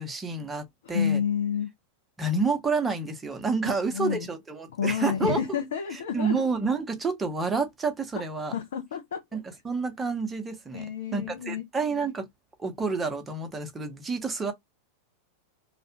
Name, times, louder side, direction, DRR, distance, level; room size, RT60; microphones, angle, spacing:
voice 1, 0.0-1.2 2.2-5.6 5.9-8.5 9.3-12.3 12.6-14.5, right 4 dB, 15° right, 0.7 m, -29 dB
voice 2, 0.9-1.7 3.9-4.3 4.7-6.4 8.5-9.2 10.7-11.6, left 8 dB, 60° left, 0.4 m, -29 dB
2.4 x 2.1 x 2.8 m
figure-of-eight pair, 90°, 0 cm